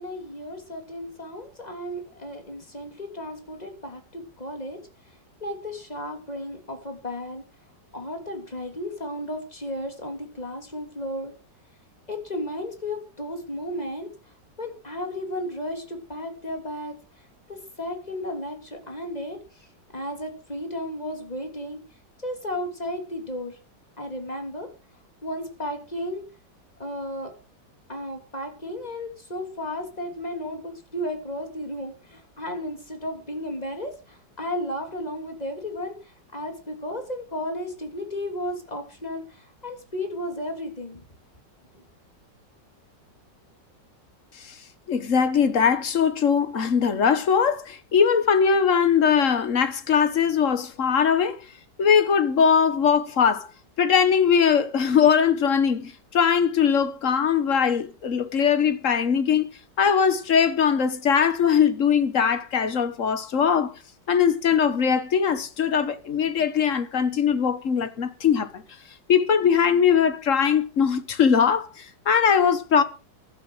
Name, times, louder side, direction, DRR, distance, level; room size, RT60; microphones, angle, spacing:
voice 1, 0.0-4.8 5.0-7.4 7.9-11.3 12.1-14.1 14.6-19.7 19.9-21.8 22.2-23.6 24.0-24.7 25.2-26.2 26.8-27.3 27.9-41.0 41.7-41.8, left 1 dB, 20° left, 3.2 m, -34 dB
voice 2, 44.9-51.4 51.8-53.5 53.8-59.5 59.8-63.7 64.1-68.6 69.1-72.8, left 7 dB, 50° left, 1.5 m, -21 dB
15.0 x 12.0 x 4.9 m
omnidirectional pair, 1.9 m